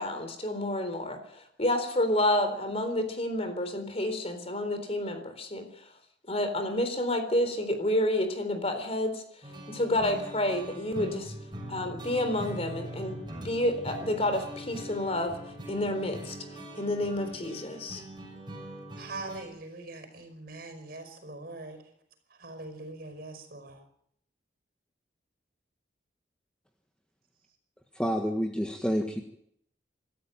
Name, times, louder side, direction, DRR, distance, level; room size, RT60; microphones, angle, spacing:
voice 1, 0.0-5.8 6.3-9.2 9.7-11.3 11.7-15.4 15.7-16.4 16.7-18.0, left 1 dB, 35° left, 8 dB, 3.8 m, -29 dB
sound 1, 9.4-19.4, right 1 dB, 25° right, 6.2 m, -42 dB
voice 2, 19.0-21.8 22.4-23.8, right 2 dB, 55° right, 8 dB, 5.2 m, -42 dB
voice 3, 27.9-29.2, equal, 5° left, 3 dB, 1.6 m, -28 dB
26.0 x 13.5 x 9.1 m, 0.71 s
head